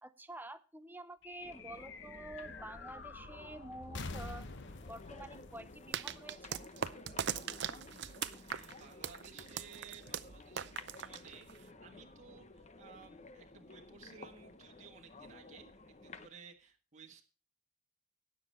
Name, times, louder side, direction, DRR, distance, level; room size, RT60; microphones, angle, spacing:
voice 1, 0.0-4.5 4.9-6.6, right 2 dB, 10° right, 12 dB, 0.7 m, -49 dB
sound 1, 1.2-6.9, left 3 dB, 55° left, 1.1 m, -48 dB
sound 2, 1.4-16.3, left 3 dB, 30° left, 0.9 m, -53 dB
sound 3, 5.9-11.7, right 8 dB, 55° right, 0.6 m, -40 dB
voice 2, 8.4-17.2, right 6 dB, 35° right, 0 dB, 1.6 m, -56 dB
17.5 x 7.0 x 4.4 m, 0.34 s
head